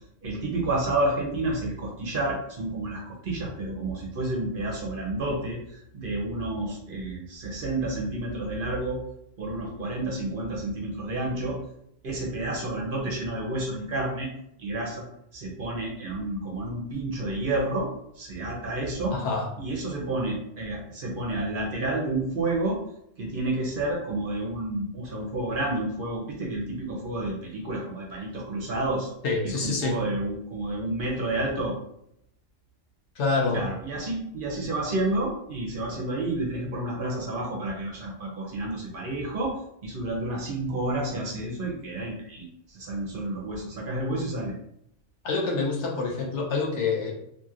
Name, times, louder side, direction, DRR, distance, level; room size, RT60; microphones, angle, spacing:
voice 1, 0.2-9.0 9.4-11.6 12.0-14.3 14.6-15.1 15.3-17.9 18.2-19.2 19.6-22.8 23.2-29.1 29.4-31.7 33.5-39.6 39.8-44.5, right 2 dB, 55° right, -2 dB, 0.8 m, -30 dB
voice 2, 19.1-19.5 29.2-30.0 33.2-33.6 45.2-47.1, left 3 dB, 75° left, -1 dB, 1.0 m, -26 dB
2.8 x 2.8 x 2.4 m, 0.75 s
omnidirectional pair, 1.2 m